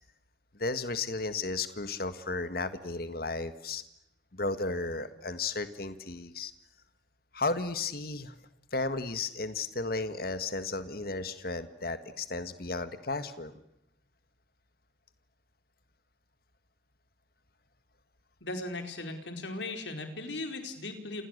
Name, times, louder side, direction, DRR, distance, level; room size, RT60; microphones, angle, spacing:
voice 1, 0.6-3.8 4.3-6.5 7.3-8.3 8.7-13.6, left 3 dB, 55° left, 11 dB, 1.7 m, -34 dB
voice 2, 18.4-21.2, left 2 dB, 80° left, 6 dB, 4.7 m, -37 dB
29.5 x 28.0 x 6.7 m, 0.82 s
head